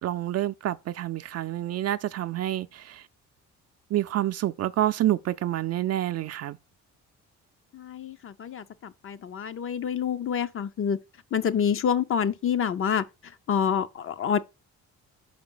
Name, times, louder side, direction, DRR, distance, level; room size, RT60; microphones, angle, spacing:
voice 1, 0.0-3.0 3.9-6.6, right 13 dB, 55° right, 0.4 m, -28 dB
voice 2, 7.7-11.0 11.3-13.0 13.5-14.4, left 7 dB, 45° left, 0.6 m, -27 dB
5.2 x 5.1 x 3.8 m
cardioid pair, 90°, 30 cm